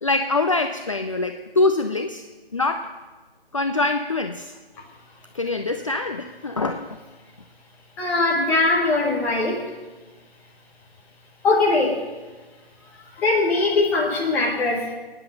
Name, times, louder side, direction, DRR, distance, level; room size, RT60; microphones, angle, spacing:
voice 1, 0.0-2.2 2.5-2.9 3.5-4.6 5.3-7.0, left 2 dB, 30° left, 6 dB, 0.6 m, -24 dB
voice 2, 8.0-9.6 11.4-12.0 13.2-14.9, left 3 dB, 5° left, -3 dB, 1.2 m, -21 dB
22.5 x 9.9 x 6.5 m, 1.3 s
figure-of-eight pair, 155°, 30 cm